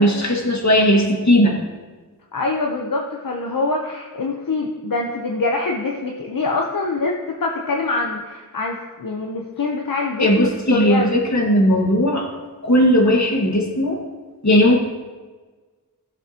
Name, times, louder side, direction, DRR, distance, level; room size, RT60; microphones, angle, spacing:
voice 1, 0.0-1.6 10.2-12.3 12.6-14.0 14.4-14.8, equal, 50° left, 0 dB, 1.8 m, -17 dB
voice 2, 2.3-11.2, left 3 dB, 70° left, 0 dB, 0.9 m, -24 dB
15.0 x 7.2 x 2.9 m, 1.4 s
wide cardioid pair, 55°, 35 cm